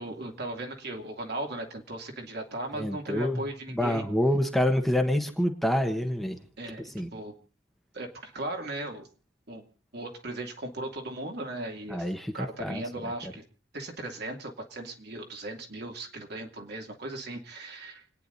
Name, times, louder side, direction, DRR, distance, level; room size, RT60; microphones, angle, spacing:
voice 1, 0.0-4.0 6.6-6.8 7.1-7.3 7.9-9.1 9.5-9.6 9.9-13.4 13.7-18.0, right 1 dB, 60° right, 2 dB, 2.6 m, -37 dB
voice 2, 2.7-3.4 3.7-6.4 6.8-7.1 11.9-12.8 13.2-13.3, left 1 dB, ahead, 4 dB, 1.2 m, -27 dB
29.5 x 9.9 x 2.7 m, 0.41 s
head